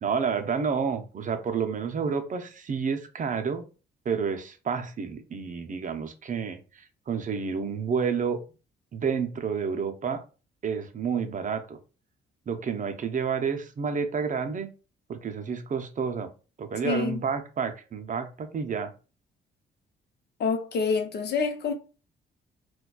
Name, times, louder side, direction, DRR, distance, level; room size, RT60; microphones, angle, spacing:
voice 1, 0.0-3.6 4.1-8.4 8.9-10.2 10.6-11.8 12.5-14.7 15.1-16.3 16.6-18.9, right 6 dB, 40° right, 0.6 m, -30 dB
voice 2, 16.8-17.2 20.4-21.7, left 5 dB, 55° left, 0.7 m, -27 dB
4.0 x 2.3 x 2.3 m
cardioid pair, 90°, 20 cm